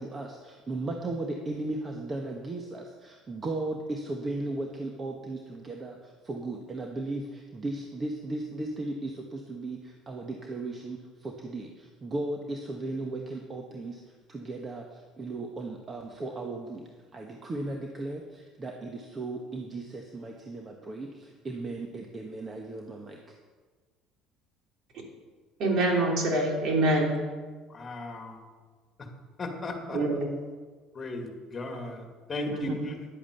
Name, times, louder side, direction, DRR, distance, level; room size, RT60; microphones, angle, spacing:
voice 1, 0.0-23.2, right 2 dB, 25° right, 2 dB, 1.3 m, -36 dB
voice 2, 25.6-27.1 29.9-30.3 32.5-32.9, right 2 dB, 55° right, 0 dB, 3.4 m, -25 dB
voice 3, 27.7-28.4 29.4-30.0 30.9-32.0 32.3-32.9, left 2 dB, 25° left, 3 dB, 2.5 m, -35 dB
11.0 x 8.7 x 6.8 m, 1.4 s
supercardioid pair, 110°, 0 cm